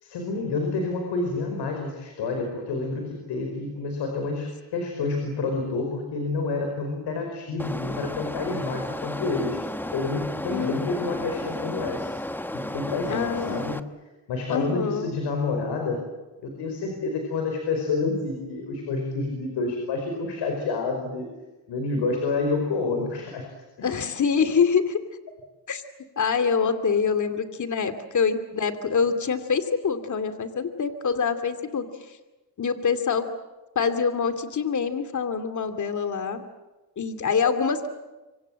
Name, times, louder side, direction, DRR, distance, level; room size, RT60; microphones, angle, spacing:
voice 1, 0.0-9.6 9.9-12.1 12.5-13.8 14.3-16.1 16.4-21.3 21.7-23.5 23.8-23.9, left 3 dB, 80° left, 3 dB, 5.1 m, -28 dB
sound 1, 7.6-13.8, left 1 dB, 5° left, 1.1 m, -33 dB
voice 2, 10.5-11.2 13.1-13.7 14.5-15.1 23.8-25.0 25.7-25.8 26.2-31.9 32.6-33.3 33.7-36.4 37.0-37.9, left 6 dB, 45° left, 9 dB, 2.6 m, -25 dB
26.0 x 25.0 x 7.6 m, 1.1 s
cardioid pair, 95°, 41 cm